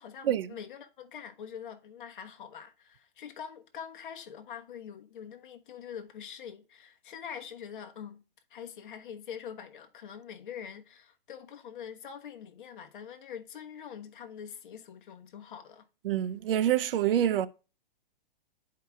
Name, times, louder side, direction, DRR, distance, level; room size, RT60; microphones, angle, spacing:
voice 1, 0.0-8.2 8.5-15.9, left 8 dB, 60° left, 1.2 m, -44 dB
voice 2, 16.0-17.5, right 11 dB, 70° right, 0.6 m, -26 dB
11.0 x 4.7 x 2.3 m
hypercardioid pair, 170°, 29 cm